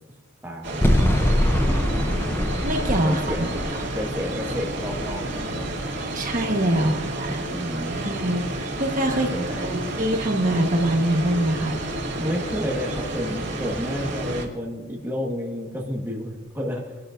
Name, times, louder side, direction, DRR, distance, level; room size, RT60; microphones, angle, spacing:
voice 1, 0.4-2.3 3.0-3.7 3.9-5.7 6.7-7.0 7.5-8.3 9.1-9.9 12.2-17.0, equal, 10° right, -1 dB, 1.4 m, -31 dB
sound 1, 0.6-14.5, right 2 dB, 55° right, 2.4 m, -30 dB
sound 2, 0.8-6.0, left 1 dB, 10° left, 0.6 m, -24 dB
voice 2, 2.6-3.5 3.8-4.0 6.1-7.4 7.9-9.3 9.6-12.0, right 1 dB, 35° right, 2 dB, 1.3 m, -24 dB
22.0 x 11.5 x 2.6 m, 1.5 s
head